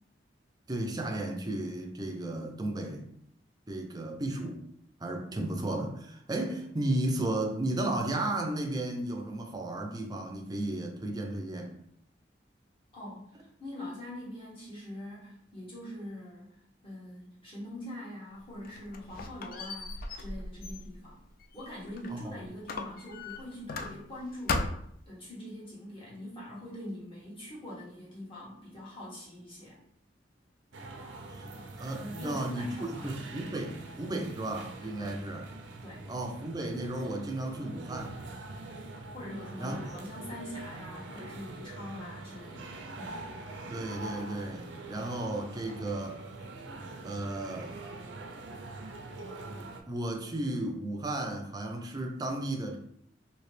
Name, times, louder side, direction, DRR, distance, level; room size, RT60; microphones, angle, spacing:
voice 1, 0.7-3.1 3.7-4.6 5.0-11.7 22.1-22.3 31.3-35.4 36.1-38.2 39.6-40.0 41.5-41.6 43.7-46.2 47.0-47.7 49.9-52.8, right 1 dB, 20° right, 3 dB, 0.5 m, -34 dB
voice 2, 12.9-16.5 16.8-21.2 21.5-24.7 25.0-29.8 32.0-33.1 35.0-35.2 35.8-36.1 39.1-43.2, left 1 dB, 30° left, -6 dB, 1.4 m, -43 dB
Squeak, 18.4-22.2 22.7-24.2 24.5-25.0, left 3 dB, 50° left, 0.3 m, -37 dB
sound 1, 30.7-49.8, right 2 dB, 90° right, 0.5 m, -44 dB
3.1 x 2.8 x 3.2 m, 0.69 s
head